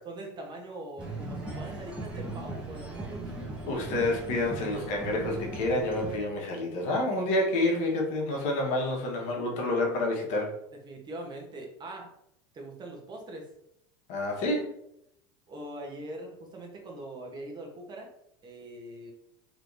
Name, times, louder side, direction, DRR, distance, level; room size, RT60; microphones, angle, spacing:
voice 1, 0.0-3.3 3.6-3.7 10.8-12.1 12.5-13.5 15.5-18.1 18.4-19.1, right 1 dB, 30° right, 1 dB, 0.9 m, -42 dB
sound 1, 1.0-6.2, right 2 dB, 5° right, 0.9 m, -38 dB
voice 2, 3.7-10.5 14.1-14.7, left 1 dB, 55° left, 0 dB, 1.1 m, -28 dB
3.3 x 3.0 x 2.6 m, 0.76 s
supercardioid pair, 105°, 15 cm